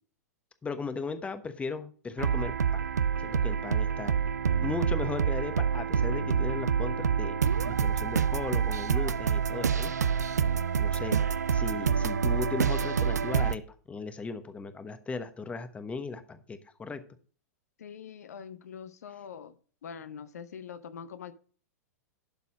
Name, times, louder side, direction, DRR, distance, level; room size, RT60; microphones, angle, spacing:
voice 1, 0.6-2.9 3.2-4.1 4.6-7.4 7.6-9.9 10.8-11.2 11.5-13.6 13.9-17.0, left 4 dB, 15° left, 1.1 m, -37 dB
sound 1, 2.2-13.6, right 7 dB, 85° right, 0.5 m, -27 dB
voice 2, 17.8-19.5 19.8-21.3, left 7 dB, 70° left, 0.8 m, -43 dB
12.0 x 4.1 x 6.2 m
hypercardioid pair, 105°, 9 cm